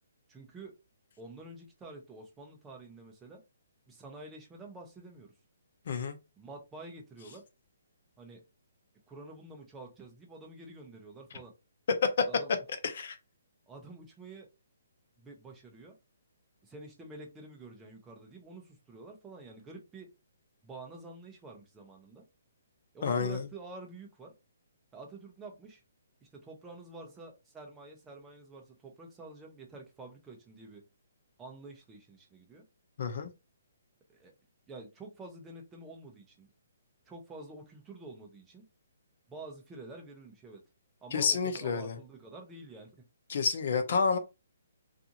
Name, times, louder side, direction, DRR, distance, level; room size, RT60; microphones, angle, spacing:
voice 1, 0.3-0.8 1.2-3.4 3.9-5.3 6.4-7.4 8.2-8.4 9.1-11.5 12.3-12.5 13.7-14.5 15.2-16.0 16.6-20.1 20.6-22.3 22.9-24.3 24.9-25.8 26.2-30.8 31.4-32.6 34.1-34.3 34.7-36.5 37.1-38.7 39.3-40.6 41.0-43.1, right 2 dB, 10° right, 0.6 m, -48 dB
voice 2, 5.9-6.2 12.0-12.1 12.8-13.2 23.0-23.5 33.0-33.3 41.1-42.0 43.3-44.2, left 5 dB, 50° left, 0.6 m, -29 dB
2.5 x 2.5 x 2.8 m
hypercardioid pair, 165°, 0 cm